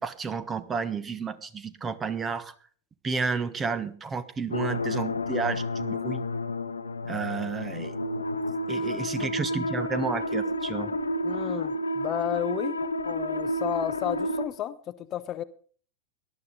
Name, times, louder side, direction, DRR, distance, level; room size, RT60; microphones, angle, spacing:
voice 1, 0.0-2.5 3.0-6.2 7.1-7.9 8.7-10.9, right 5 dB, 20° right, 1.3 m, -31 dB
sound 1, 4.5-14.4, left 1 dB, 75° left, 1.0 m, -30 dB
voice 2, 11.2-15.4, left 11 dB, 35° left, 0.8 m, -32 dB
18.5 x 12.0 x 4.0 m
figure-of-eight pair, 90°, 0 cm